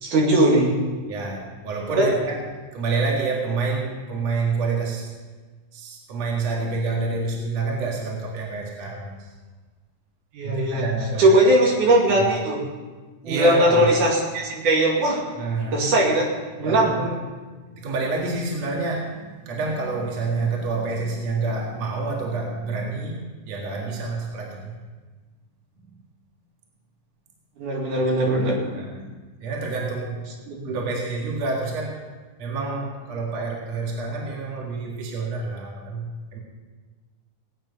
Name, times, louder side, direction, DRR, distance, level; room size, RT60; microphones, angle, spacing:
voice 1, 0.0-0.8 1.9-2.1 10.3-10.9 11.2-12.6 13.2-15.2 15.7-16.3 16.6-17.0 27.6-28.6 30.5-30.8, right 1 dB, 75° right, -2 dB, 3.8 m, -19 dB
voice 2, 1.1-2.4 2.7-5.1 5.7-9.1 10.4-11.4 12.2-12.3 13.2-14.0 15.4-15.9 16.5-17.2 17.7-24.8 28.7-29.1 29.4-30.2 30.6-32.0 32.4-36.4, right 3 dB, 60° right, -1 dB, 3.0 m, -28 dB
18.5 x 9.2 x 5.6 m, 1.3 s
omnidirectional pair, 3.6 m